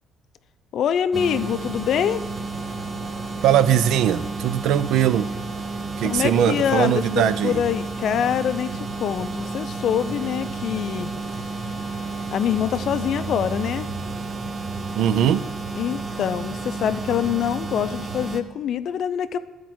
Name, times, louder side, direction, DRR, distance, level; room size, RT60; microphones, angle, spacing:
voice 1, 0.7-2.2 6.0-11.1 12.3-13.9 15.8-19.4, left 9 dB, 50° left, 13 dB, 0.4 m, -25 dB
sound 1, 1.1-18.4, right 3 dB, 25° right, 0.6 m, -31 dB
voice 2, 3.4-5.3 6.0-7.6 15.0-15.5, right 10 dB, 70° right, 15 dB, 0.4 m, -20 dB
13.0 x 4.6 x 6.0 m, 1.3 s
cardioid pair, 160°, 0 cm